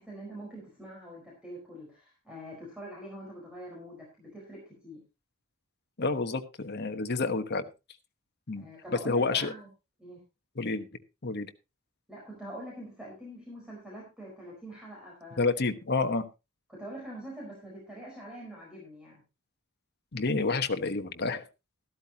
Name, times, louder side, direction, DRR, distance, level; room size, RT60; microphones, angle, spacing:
voice 1, 0.0-5.0 8.6-9.7 10.0-10.2 12.1-15.4 16.7-19.2, right 1 dB, 5° right, -3 dB, 4.5 m, -44 dB
voice 2, 6.0-7.6 8.5-8.7 9.0-9.5 10.6-10.9 11.2-11.5 15.4-16.2 20.1-21.4, left 3 dB, 50° left, 8 dB, 1.2 m, -29 dB
14.0 x 12.5 x 2.9 m, 0.27 s
head